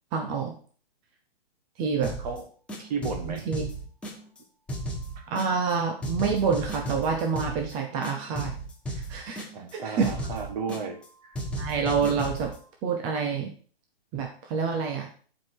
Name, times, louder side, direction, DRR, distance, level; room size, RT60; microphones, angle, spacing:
voice 1, 0.1-0.5 1.8-2.1 3.3-3.6 5.3-8.6 8.9-9.5 9.8-10.1 11.6-12.5 12.8-13.5 14.1-15.1, right 5 dB, 15° right, 3 dB, 0.5 m, -27 dB
sound 1, 2.0-2.4 2.7-4.4 4.7-5.7 6.0-7.7 8.0-9.7 10.0-11.1 11.3-12.6, right 1 dB, 5° left, 0.9 m, -35 dB
voice 2, 2.8-3.4 5.2-5.3 9.5-11.4, right 5 dB, 40° right, 5 dB, 1.8 m, -34 dB
10.5 x 4.6 x 4.6 m, 0.43 s
hypercardioid pair, 150°, 31 cm